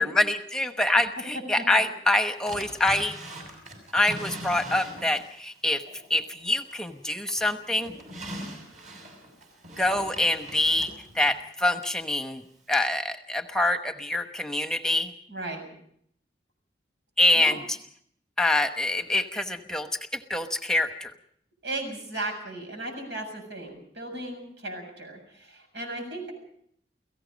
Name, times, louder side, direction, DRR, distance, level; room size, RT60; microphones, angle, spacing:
voice 1, 0.0-3.2 3.9-5.8 6.1-7.9 9.7-12.4 12.7-15.1 17.2-17.8 18.4-21.1, left 1 dB, 5° left, 7 dB, 1.0 m, -25 dB
Drawer open or close, 2.5-5.4 5.9-6.9 7.3-12.0 12.7-12.8, right 1 dB, 45° right, 6.8 m, -41 dB
voice 2, 15.3-15.6 17.4-17.6 21.6-26.3, right 2 dB, 85° right, 5 dB, 7.2 m, -36 dB
29.5 x 17.5 x 5.3 m, 0.66 s
head